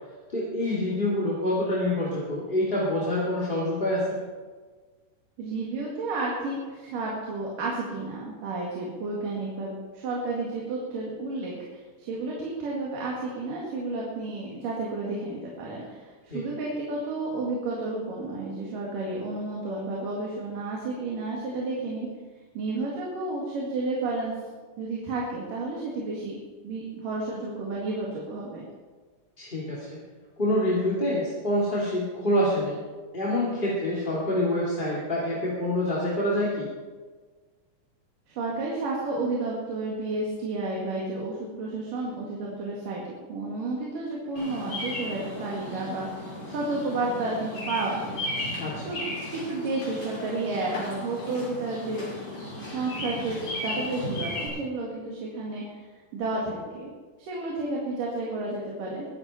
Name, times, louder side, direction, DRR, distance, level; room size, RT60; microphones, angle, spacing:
voice 1, 0.3-4.1 16.3-16.4 29.4-30.0 30.4-32.8 33.1-36.7 48.6-48.7, left 1 dB, 15° left, -7 dB, 2.5 m, -26 dB
voice 2, 5.4-22.1 22.6-24.3 24.8-26.4 26.6-28.6 38.4-43.0 43.3-46.1 46.5-48.2 48.8-49.0 49.3-52.1 52.6-55.8 56.1-56.9 57.2-59.1, right 2 dB, 80° right, -4 dB, 3.8 m, -31 dB
Bird vocalization bird call bird song, 44.4-54.5, left 1 dB, 50° left, 6.9 m, -35 dB
22.5 x 11.0 x 4.3 m, 1.4 s
omnidirectional pair, 3.8 m